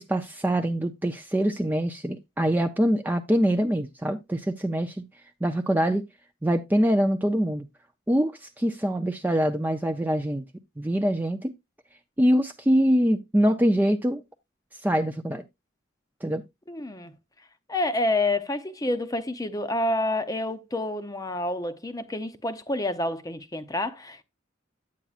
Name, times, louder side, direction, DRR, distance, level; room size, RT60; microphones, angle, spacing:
voice 1, 0.0-5.1 5.4-6.0 6.4-7.7 8.1-10.4 10.8-11.5 12.2-14.2 14.8-15.4 16.2-16.4, equal, 10° right, 0.4 m, -24 dB
voice 2, 16.7-17.1 17.7-24.2, left 2 dB, 20° left, 0.7 m, -28 dB
9.0 x 8.5 x 2.4 m
head